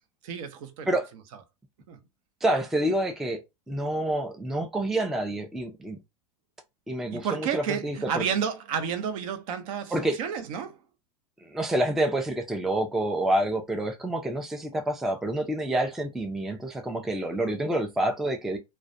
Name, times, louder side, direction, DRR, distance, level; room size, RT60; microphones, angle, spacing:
voice 1, 0.2-0.9 1.9-2.0 7.1-10.8, right 7 dB, 60° right, 0.6 m, -31 dB
voice 2, 2.4-3.4 3.7-6.0 6.9-8.2 9.9-10.2 11.4-18.6, right 1 dB, ahead, 0.3 m, -28 dB
2.3 x 2.1 x 2.6 m
hypercardioid pair, 90°, 20 cm